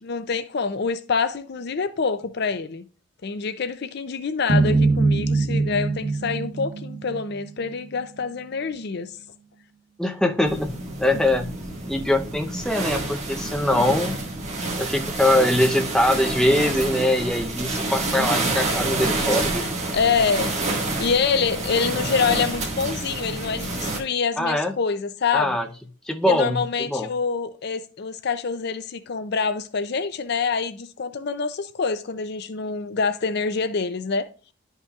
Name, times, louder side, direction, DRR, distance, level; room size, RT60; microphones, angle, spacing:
voice 1, 0.0-2.8 3.2-9.1 19.9-20.5 21.0-25.6 26.3-34.3, left 5 dB, 55° left, 0.5 m, -26 dB
sound 1, 4.5-7.7, right 3 dB, 80° right, 1.2 m, -22 dB
voice 2, 10.0-10.7 11.0-11.5 11.9-14.1 14.8-19.6 24.4-24.7 25.3-25.7 26.1-27.1, left 1 dB, 5° left, 0.7 m, -22 dB
sound 2, 10.4-24.0, right 2 dB, 35° right, 1.5 m, -28 dB
11.5 x 5.5 x 2.4 m
head